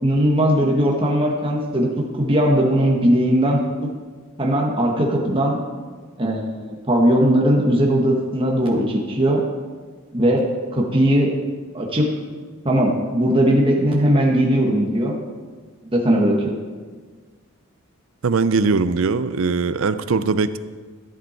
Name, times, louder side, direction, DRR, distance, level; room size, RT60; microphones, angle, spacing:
voice 1, 0.0-1.9 2.2-3.9 4.4-5.6 6.2-9.4 10.1-11.4 11.7-12.1 12.6-15.1 15.8-16.5, equal, 25° right, -1 dB, 1.4 m, -19 dB
voice 2, 18.2-20.6, right 4 dB, 70° right, 13 dB, 0.5 m, -20 dB
14.0 x 7.8 x 4.4 m, 1.5 s
head